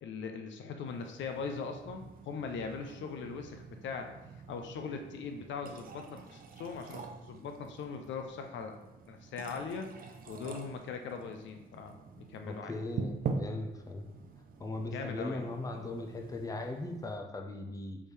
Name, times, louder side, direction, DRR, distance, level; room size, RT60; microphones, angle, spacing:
voice 1, 0.0-4.1 4.5-8.8 9.1-12.7 14.9-15.4, left 5 dB, 70° left, 5 dB, 0.5 m, -40 dB
sound 1, 0.9-17.2, right 5 dB, 45° right, 0.5 m, -45 dB
voice 2, 12.5-14.1 14.6-18.0, left 2 dB, 15° left, 3 dB, 0.6 m, -38 dB
3.5 x 3.2 x 4.4 m, 0.98 s
cardioid pair, 90°, 20 cm